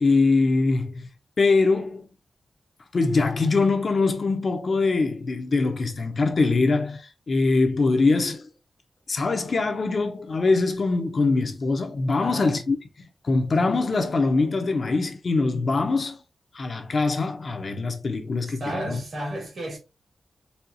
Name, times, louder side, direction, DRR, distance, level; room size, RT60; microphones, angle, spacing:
voice 1, 0.0-1.0 1.4-2.1 2.9-8.5 9.1-12.8 13.2-16.2 16.5-19.0, left 3 dB, 50° left, 0.7 m, -23 dB
voice 2, 12.2-12.5 18.5-19.8, right 1 dB, 75° right, 2.1 m, -33 dB
4.3 x 2.3 x 2.6 m
wide cardioid pair, 115°, 0 cm